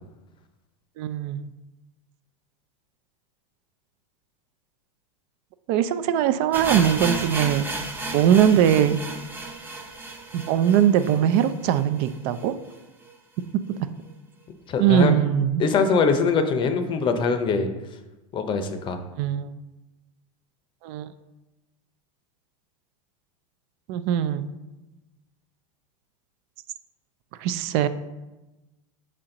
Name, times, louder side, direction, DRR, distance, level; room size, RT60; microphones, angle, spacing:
voice 1, 1.0-1.4 5.7-7.7 8.1-9.0 10.3-12.6 14.8-15.7 19.2-19.5 20.8-21.1 23.9-24.5 27.4-27.9, right 9 dB, 50° right, 12 dB, 0.4 m, -21 dB
sound 1, 6.5-12.4 12.7-12.8 13.0-13.1 13.7-13.8, right 2 dB, 10° right, 0.7 m, -33 dB
voice 2, 14.7-15.1 15.6-17.7 18.3-19.0, left 5 dB, 30° left, 8 dB, 0.6 m, -22 dB
6.2 x 4.4 x 3.8 m, 1.0 s
supercardioid pair, 125°, 17 cm